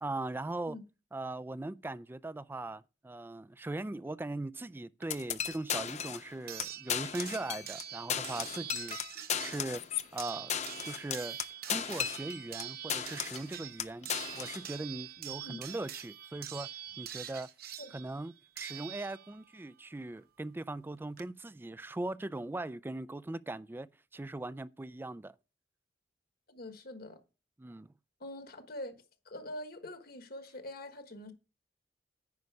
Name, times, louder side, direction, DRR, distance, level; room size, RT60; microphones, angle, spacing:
voice 1, 0.0-0.8 1.1-9.0 9.4-9.8 10.1-10.5 10.8-11.4 11.7-16.7 17.0-17.5 17.9-23.9 24.1-25.3 27.6-27.9, right 2 dB, 10° right, 0.3 m, -40 dB
sound 1, 5.0-5.1 6.5-19.5 20.7-20.8 21.2-21.3, right 11 dB, 60° right, 0.8 m, -45 dB
sound 2, 5.1-6.3 6.6-6.7 6.9-7.8 8.1-12.6 12.9-13.5 13.8-14.6, left 8 dB, 40° left, 0.5 m, -36 dB
voice 2, 26.5-27.2 28.2-29.0 29.2-31.3, left 1 dB, 60° left, 1.3 m, -44 dB
9.6 x 5.2 x 4.7 m
head